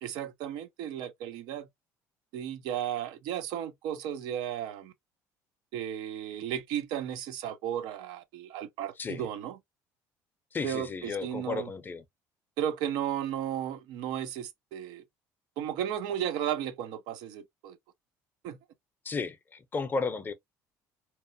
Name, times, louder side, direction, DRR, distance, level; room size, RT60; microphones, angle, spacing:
voice 1, 0.0-1.7 2.3-4.9 5.7-9.6 10.6-11.7 12.6-15.0 15.6-17.8 18.4-18.6, right 10 dB, 80° right, 0.6 m, -34 dB
voice 2, 10.5-12.0 19.1-20.3, left 4 dB, 25° left, 0.5 m, -33 dB
2.9 x 2.1 x 2.6 m
cardioid pair, 100°, 7 cm